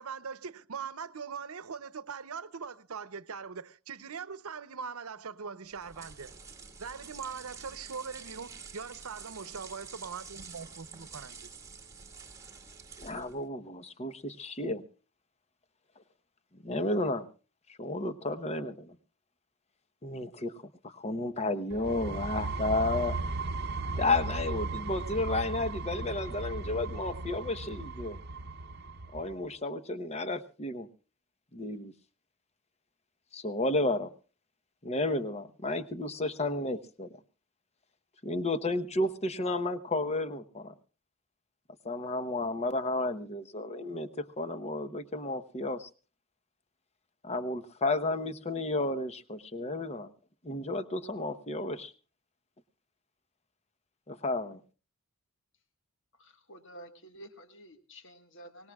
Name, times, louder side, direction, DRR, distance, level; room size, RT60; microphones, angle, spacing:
voice 1, 0.0-6.3 6.8-11.5, right 6 dB, 85° right, 0.8 m, -41 dB
sound 1, 5.7-13.5, right 5 dB, 15° right, 1.5 m, -48 dB
voice 2, 13.0-14.8 16.6-17.3 17.8-19.0 20.0-20.5 20.8-23.2 24.0-28.2 29.1-30.9 31.5-31.9 33.3-34.1 34.8-37.1 38.2-40.7 41.8-45.9 47.2-50.1 50.4-51.9 54.1-54.6, left 2 dB, 30° left, 0.9 m, -32 dB
sound 2, 21.7-29.3, right 3 dB, 50° right, 0.8 m, -36 dB
voice 3, 56.5-58.7, right 1 dB, 60° left, 1.6 m, -50 dB
24.5 x 19.5 x 2.3 m
head